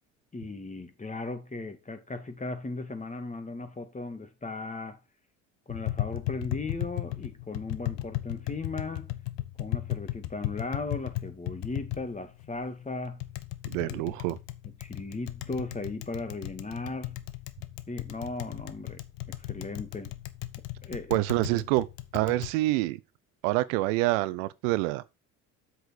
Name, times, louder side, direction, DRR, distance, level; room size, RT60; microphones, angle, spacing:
voice 1, 0.3-5.0 5.7-9.1 9.6-13.2 13.8-14.0 14.8-17.2 17.9-19.0 19.4-20.1 20.8-21.2, left 3 dB, 15° left, 2.1 m, -37 dB
Tap, 5.7-22.5, left 17 dB, 65° left, 1.0 m, -36 dB
voice 2, 13.6-14.4 21.1-21.9 22.1-23.0 23.4-25.0, right 19 dB, 65° right, 0.7 m, -26 dB
7.9 x 6.3 x 4.8 m
hypercardioid pair, 60°, 42 cm